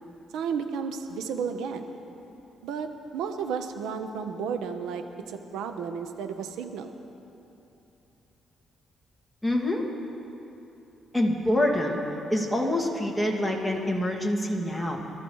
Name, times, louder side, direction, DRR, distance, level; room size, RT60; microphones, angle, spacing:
voice 1, 0.3-1.9 2.6-6.9, right 6 dB, 85° right, 7 dB, 1.0 m, -33 dB
voice 2, 9.4-9.8 11.1-12.0 12.3-15.0, left 1 dB, 5° left, -2 dB, 2.3 m, -26 dB
25.0 x 13.5 x 3.2 m, 3.0 s
cardioid pair, 90°, 0 cm